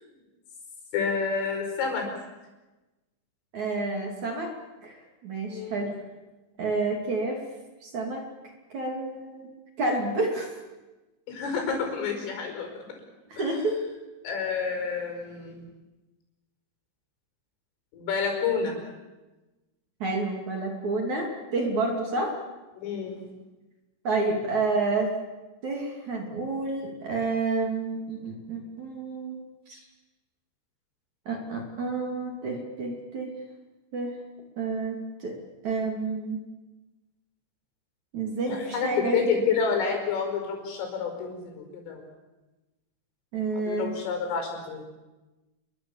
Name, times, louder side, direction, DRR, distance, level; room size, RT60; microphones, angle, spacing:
voice 1, 0.9-2.1 5.5-5.8 11.3-12.7 13.4-13.5 14.2-15.7 17.9-18.8 22.8-23.2 38.5-42.0 43.7-44.8, left 5 dB, 85° left, 3 dB, 7.8 m, -29 dB
voice 2, 3.5-4.5 4.8-5.0 5.2-5.9 6.6-7.4 7.8-8.2 8.7-9.5 9.8-10.5 13.3-13.8 20.0-22.4 24.0-25.1 25.6-29.4 29.7-29.8 31.3-33.4 33.9-34.1 34.6-35.3 35.6-36.4 38.1-39.3 43.3-43.9, right 3 dB, 45° right, 2 dB, 3.6 m, -29 dB
28.5 x 23.0 x 7.2 m, 1.1 s
omnidirectional pair, 5.6 m